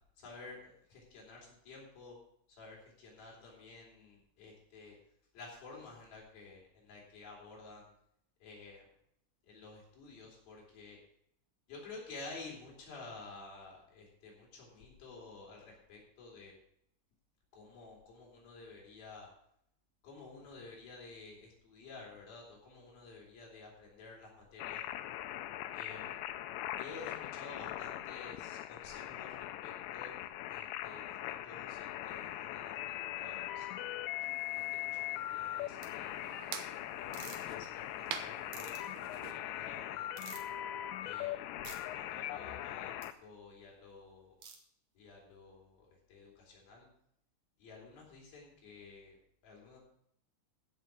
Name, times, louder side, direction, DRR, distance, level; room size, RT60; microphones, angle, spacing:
voice 1, 0.2-2.2 2.6-5.0 5.3-7.9 8.4-8.9 9.4-11.0 11.7-16.5 17.5-19.3 20.0-24.8 25.7-26.2 26.8-30.2 30.5-34.0 34.5-36.3 36.9-40.2 41.0-44.4 45.0-46.9 47.6-49.8, left 3 dB, 60° left, -2 dB, 5.6 m, -52 dB
sound 1, 24.6-43.1, left 13 dB, 85° left, 2.9 m, -41 dB
sound 2, 34.2-39.4, right 10 dB, 75° right, 2.5 m, -48 dB
sound 3, 35.8-35.9 37.1-37.4 38.5-38.8 40.2-40.5 41.6-41.8 43.0-43.1 44.4-44.6, right 6 dB, 55° right, 2.7 m, -48 dB
15.0 x 6.8 x 6.3 m, 0.70 s
omnidirectional pair, 5.0 m